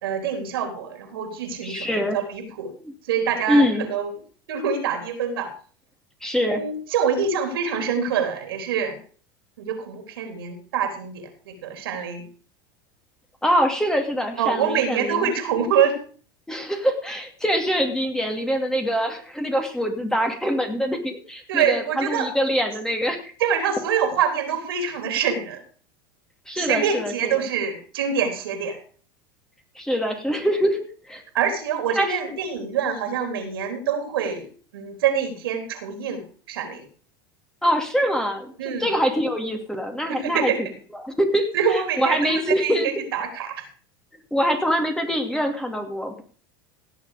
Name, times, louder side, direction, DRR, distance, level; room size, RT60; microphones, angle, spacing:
voice 1, 0.0-2.7 3.1-4.2 4.5-5.5 6.4-9.0 9.6-12.2 14.4-16.0 21.5-22.3 23.4-25.6 26.6-28.8 31.3-34.5 34.7-36.2 36.5-36.8 38.6-38.9 40.1-40.6 41.5-43.6, right 7 dB, 80° right, 6 dB, 3.8 m, -25 dB
voice 2, 1.6-2.2 2.8-2.9 3.5-3.9 6.2-6.6 13.4-15.3 16.5-23.3 26.5-27.3 29.8-31.2 31.9-32.1 37.6-40.5 41.0-42.9 44.3-46.2, equal, 5° left, 4 dB, 2.7 m, -24 dB
17.5 x 6.8 x 5.1 m, 0.42 s
hypercardioid pair, 95°, 12 cm